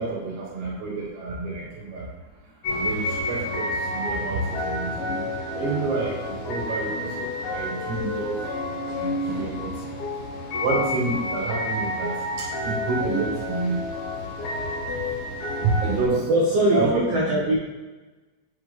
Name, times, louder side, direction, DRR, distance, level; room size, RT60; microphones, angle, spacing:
voice 1, 0.0-2.1 2.8-8.4 9.0-9.7 10.6-13.8 15.6-16.3 16.7-17.0, right 3 dB, 65° right, -5 dB, 2.5 m, -28 dB
sound 1, 2.6-16.1, left 1 dB, 70° left, 3.3 m, -29 dB
voice 2, 16.1-17.5, right 1 dB, 85° right, -5 dB, 1.3 m, -22 dB
6.2 x 4.6 x 3.6 m, 1.2 s
omnidirectional pair, 4.1 m